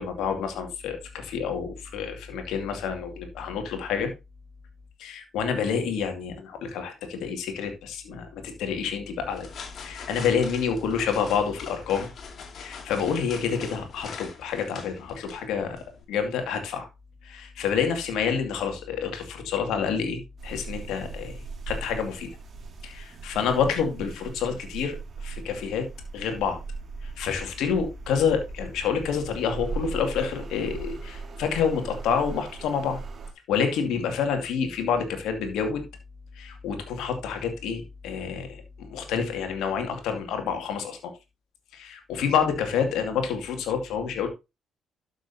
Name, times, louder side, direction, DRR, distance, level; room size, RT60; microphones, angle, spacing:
voice 1, 0.0-4.1 5.0-9.5 9.8-12.1 12.5-15.8 16.1-16.9 17.2-22.3 22.8-25.0 25.2-25.9 26.1-26.6 27.2-33.0 33.5-35.8 36.4-41.1 41.7-44.3, left 6 dB, 70° left, 2.3 m, -28 dB
sound 1, 9.2-16.0, left 5 dB, 55° left, 2.4 m, -43 dB
sound 2, 20.4-33.3, right 4 dB, 50° right, 2.4 m, -39 dB
12.0 x 6.4 x 2.8 m
hypercardioid pair, 45°, 0 cm